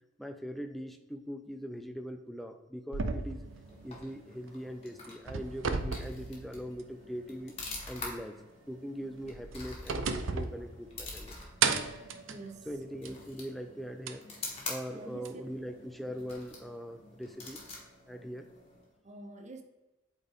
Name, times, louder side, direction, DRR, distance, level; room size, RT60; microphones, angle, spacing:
voice 1, 0.2-3.5 3.8-7.6 7.9-8.4 8.7-11.5 12.7-14.3 14.7-17.6 18.1-18.5, equal, ahead, 6 dB, 0.5 m, -41 dB
sound 1, 2.9-4.7 5.0-7.1 7.4-7.5 9.1-11.2 11.6-13.3 14.1-14.2 15.2-15.3, right 5 dB, 70° right, 0.6 m, -35 dB
sound 2, 3.4-19.0, left 3 dB, 30° left, 1.7 m, -47 dB
voice 2, 12.3-12.7 14.8-15.4 19.0-19.6, right 2 dB, 35° right, 5 dB, 0.8 m, -47 dB
8.2 x 4.3 x 3.6 m, 1.1 s
head